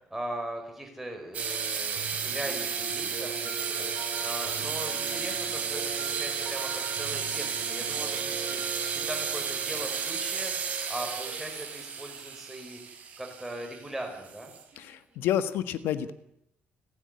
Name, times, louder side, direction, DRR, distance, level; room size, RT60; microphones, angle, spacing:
voice 1, 0.0-10.5 10.9-14.5, right 1 dB, 5° right, 2 dB, 5.5 m, -39 dB
sound 1, 1.3-14.8, right 6 dB, 40° right, 5.2 m, -33 dB
sound 2, 1.9-11.1, right 7 dB, 65° right, 2.8 m, -42 dB
voice 2, 14.8-16.1, left 10 dB, 90° left, 12 dB, 1.6 m, -29 dB
29.5 x 10.5 x 9.9 m, 0.80 s
cardioid pair, 155°, 4 cm